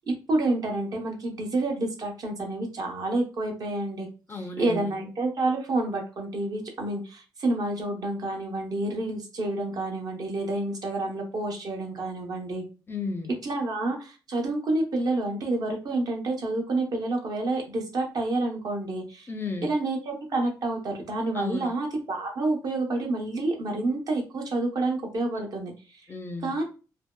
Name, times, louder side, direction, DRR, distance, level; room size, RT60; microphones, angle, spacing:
voice 1, 0.1-4.1 4.6-12.6 13.4-19.3 19.6-26.0 26.4-26.6, right 2 dB, 55° right, 1 dB, 0.8 m, -29 dB
voice 2, 4.3-4.9 12.9-13.3 19.3-19.7 21.3-21.7 26.1-26.5, left 3 dB, 30° left, 5 dB, 0.4 m, -34 dB
2.6 x 2.2 x 2.2 m, 0.33 s
cardioid pair, 105°, 8 cm